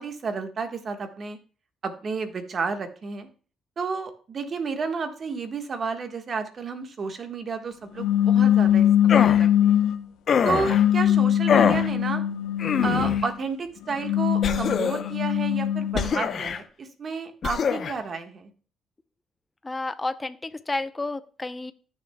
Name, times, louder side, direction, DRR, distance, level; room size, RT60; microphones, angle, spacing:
voice 1, 0.0-1.4 1.8-3.3 3.8-9.8 10.4-12.2 12.8-18.5, right 4 dB, 45° right, 7 dB, 1.4 m, -31 dB
sound 1, 8.0-10.0 10.6-13.3 13.9-16.2, left 10 dB, 90° left, 0.7 m, -21 dB
sound 2, 9.1-9.5 10.3-10.8 11.5-11.9 12.6-13.2 14.4-15.1 15.9-16.6 17.4-17.9, left 7 dB, 55° left, 0.8 m, -24 dB
voice 2, 19.6-21.7, left 2 dB, 20° left, 13 dB, 0.6 m, -31 dB
14.5 x 6.7 x 2.2 m, 0.40 s
cardioid pair, 90°, 0 cm